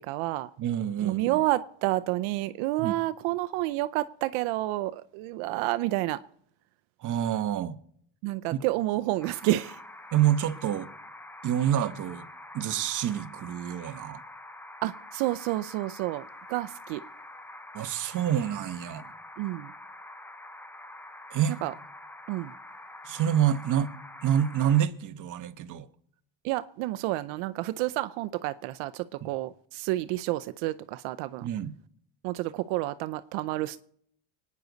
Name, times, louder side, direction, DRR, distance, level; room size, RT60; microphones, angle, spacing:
voice 1, 0.0-0.5 1.0-6.2 8.2-9.8 14.8-17.0 19.4-19.7 21.6-21.7 22.3-22.5 26.4-31.5 32.2-33.8, right 17 dB, 75° right, 0.7 m, -30 dB
voice 2, 0.6-1.4 2.8-2.9 7.0-7.8 8.5-8.6 10.1-10.9 11.4-12.3 12.5-14.2 17.7-19.1 21.3-21.6 23.0-23.9 24.2-25.9 29.2-29.3 31.4-31.7, right 10 dB, 40° right, 1.1 m, -27 dB
sound 1, 9.2-24.9, left 1 dB, 5° left, 0.4 m, -46 dB
26.0 x 9.7 x 4.0 m
cardioid pair, 150°, 49 cm